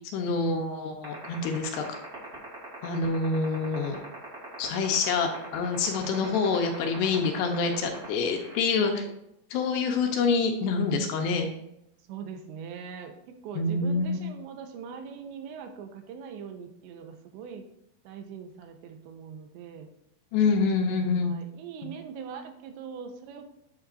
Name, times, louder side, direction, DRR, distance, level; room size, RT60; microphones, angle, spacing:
voice 1, 0.1-1.8 2.8-4.0 4.6-9.0 9.5-11.5 13.6-14.2 20.3-21.3, left 4 dB, 75° left, 3 dB, 2.7 m, -26 dB
sound 1, 1.0-8.6, right 6 dB, 25° right, 3.1 m, -42 dB
voice 2, 8.8-9.2 12.1-13.2 13.4-17.6 18.0-19.9 20.8-23.5, right 6 dB, 90° right, 6 dB, 3.1 m, -42 dB
11.5 x 7.3 x 2.5 m, 0.81 s
omnidirectional pair, 5.2 m